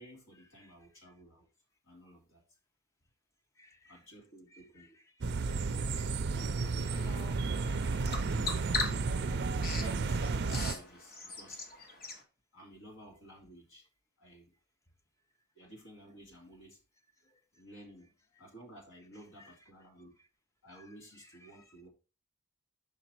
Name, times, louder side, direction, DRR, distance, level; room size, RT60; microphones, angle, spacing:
voice 1, 0.0-1.5 1.8-2.4 3.9-5.0 6.1-7.3 8.0-11.6 12.5-13.9 14.2-14.5 15.5-16.8 17.2-18.1 18.4-20.1 20.6-21.9, equal, 60° left, 3.0 m, -54 dB
voice 2, 3.6-4.0 4.5-4.9 5.3-6.1 6.6-8.2 19.4-19.5 20.7-20.9 21.2-21.6, left 2 dB, 15° left, 0.6 m, -57 dB
sound 1, 5.2-10.7, right 4 dB, 50° right, 0.5 m, -32 dB
Bird vocalization bird call bird song, 6.6-12.2, left 3 dB, 40° left, 1.4 m, -41 dB
6.8 x 5.1 x 4.5 m
head